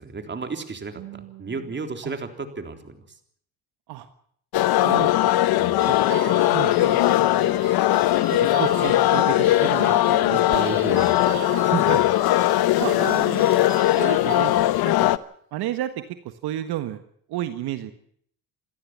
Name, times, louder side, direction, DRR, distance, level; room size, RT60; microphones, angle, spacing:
voice 1, 0.0-3.0 5.6-5.9 10.5-12.0, right 4 dB, 30° right, 7 dB, 3.6 m, -34 dB
voice 2, 1.0-1.8 2.0-2.1 3.9-4.1 4.8-5.4 5.9-6.0 6.5-7.6 8.4-11.0 11.6-12.3 12.8-14.5 14.8-15.1 15.5-17.0 17.3-17.9, right 13 dB, 75° right, 10 dB, 1.6 m, -32 dB
sound 1, 4.5-15.2, left 14 dB, 70° left, 1.0 m, -20 dB
sound 2, 5.8-14.9, right 7 dB, 45° right, 3.0 m, -39 dB
28.5 x 13.0 x 7.5 m, 0.64 s
cardioid pair, 90°, 39 cm